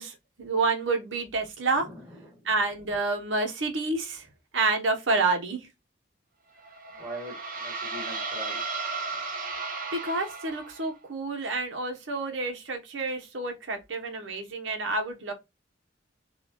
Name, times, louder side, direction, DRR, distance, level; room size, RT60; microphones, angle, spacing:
voice 1, 0.0-1.9 2.4-4.3 4.5-5.7 9.9-15.3, right 3 dB, 80° right, 0.9 m, -29 dB
voice 2, 1.8-2.3 7.0-8.6, right 1 dB, 15° right, 1.3 m, -42 dB
sound 1, 6.6-10.9, right 3 dB, 45° right, 0.8 m, -35 dB
3.9 x 2.3 x 2.9 m
head